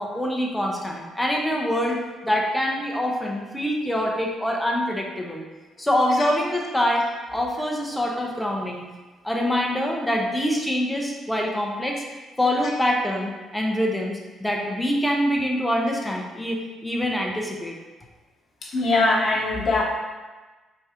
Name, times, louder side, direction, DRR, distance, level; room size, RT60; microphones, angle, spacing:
voice 1, 0.0-5.4 5.8-8.8 9.2-12.0 12.4-17.8, equal, 5° left, -1 dB, 0.7 m, -25 dB
voice 2, 18.7-19.8, left 2 dB, 45° left, -6 dB, 1.1 m, -21 dB
4.6 x 3.5 x 2.9 m, 1.2 s
cardioid pair, 105°, 0 cm